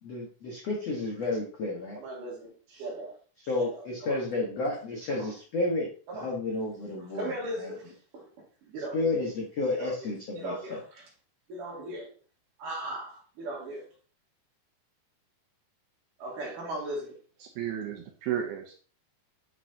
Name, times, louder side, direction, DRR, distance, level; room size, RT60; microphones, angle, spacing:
voice 1, 0.0-2.0 3.5-5.9 6.2-7.7 8.9-10.8, left 2 dB, 60° left, -2 dB, 1.8 m, -31 dB
voice 2, 1.9-3.2 3.5-4.2 5.1-5.3 6.1-6.3 7.1-8.3 8.6-9.2 9.7-11.1 11.5-12.1 12.6-13.9 16.2-17.2, right 1 dB, 55° right, -2 dB, 3.4 m, -38 dB
voice 3, 17.4-18.8, right 10 dB, 75° right, 3 dB, 2.4 m, -33 dB
9.2 x 5.9 x 2.9 m, 0.39 s
omnidirectional pair, 5.0 m